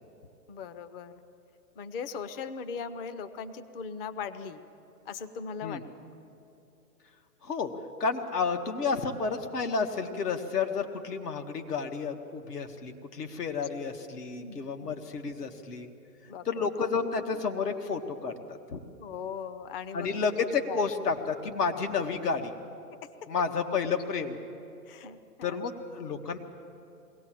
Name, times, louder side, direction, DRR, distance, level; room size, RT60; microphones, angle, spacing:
voice 1, 0.5-1.2 1.8-4.6 5.1-6.1 14.4-14.9 16.3-16.7 17.2-17.3 19.0-20.1 20.7-20.8 21.5-21.6 22.9-23.3 24.9-25.6, left 6 dB, 35° left, 11 dB, 0.8 m, -39 dB
voice 2, 8.0-15.9 16.5-18.8 19.9-22.5 23.3-24.4 25.4-26.4, left 5 dB, 75° left, 5 dB, 1.9 m, -31 dB
21.5 x 17.5 x 7.6 m, 2.8 s
hypercardioid pair, 140°, 48 cm